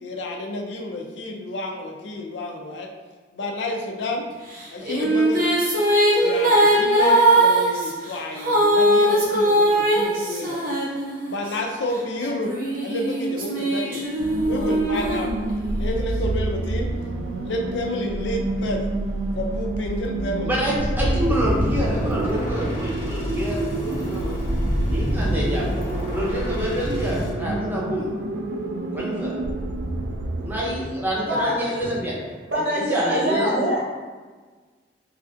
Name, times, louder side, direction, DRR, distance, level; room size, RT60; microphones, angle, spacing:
voice 1, 0.0-2.9 3.3-4.3 4.7-5.5 6.1-10.7 11.2-12.5 12.8-14.1 14.4-15.3 15.7-16.9 17.4-18.8 19.3-20.6, left 1 dB, 90° left, 2 dB, 0.4 m, -30 dB
sound 1, 4.5-11.5 12.2-15.9, right 1 dB, 55° right, 0.7 m, -20 dB
sound 2, 14.2-32.4, right 2 dB, 70° right, 0.3 m, -29 dB
voice 2, 20.4-24.3 24.9-25.7 26.1-28.1 28.9-29.3 30.4-32.1 32.9-33.7, equal, 10° right, -5 dB, 0.7 m, -27 dB
sound 3, 20.7-27.3, equal, 45° left, 0.6 m, -27 dB
voice 3, 31.3-31.9 32.5-33.8, right 1 dB, 90° right, -6 dB, 1.1 m, -24 dB
3.1 x 2.5 x 2.5 m, 1.4 s
head